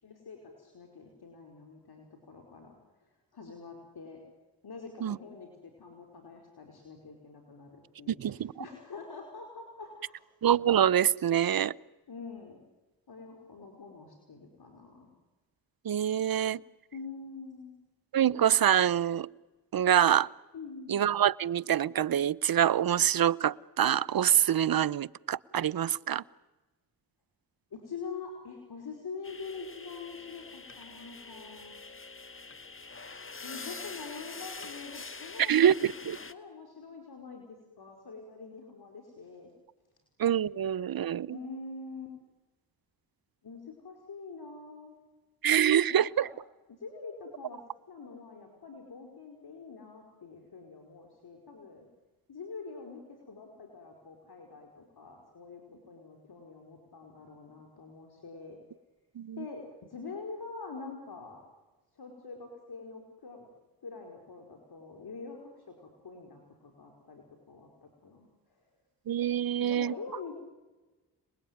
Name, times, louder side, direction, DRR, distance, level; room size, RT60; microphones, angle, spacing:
voice 1, 0.0-2.7 3.0-4.2 4.6-10.3 12.1-12.6 13.1-15.1 16.9-17.7 20.5-21.0 27.7-31.8 33.4-39.5 40.5-40.6 41.3-42.2 43.4-45.0 45.9-46.3 46.8-51.9 52.3-58.6 59.4-61.4 61.9-63.4 63.8-68.6 69.6-70.4, left 4 dB, 60° left, 2 dB, 5.0 m, -45 dB
voice 2, 8.2-8.5 10.4-11.8 15.8-16.6 18.1-19.3 19.7-20.3 20.9-26.2 35.4-36.2 40.2-41.4 45.4-46.3 59.2-59.4 69.1-69.9, right 10 dB, 55° right, 23 dB, 0.8 m, -25 dB
sound 1, 29.2-36.3, left 3 dB, 30° left, 1.8 m, -45 dB
30.0 x 20.5 x 9.4 m, 1.2 s
supercardioid pair, 45°, 43 cm